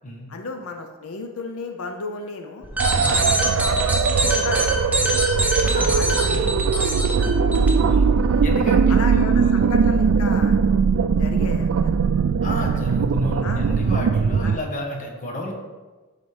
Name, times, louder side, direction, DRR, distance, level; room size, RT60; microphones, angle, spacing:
voice 1, 0.3-2.6 3.0-4.7 5.0-5.2 5.7-7.7 8.3-8.5 8.9-11.9 12.6-12.7 13.4-13.7 14.4-14.6, left 3 dB, 85° left, 5 dB, 0.6 m, -34 dB
sound 1, 2.6-7.7, right 1 dB, 5° right, 0.8 m, -24 dB
sound 2, 2.8-14.6, right 5 dB, 70° right, 0.3 m, -20 dB
voice 2, 5.6-6.5 7.8-8.1 8.4-9.6 12.4-15.5, left 1 dB, 35° left, 1 dB, 1.1 m, -32 dB
11.5 x 4.1 x 3.3 m, 1.3 s
head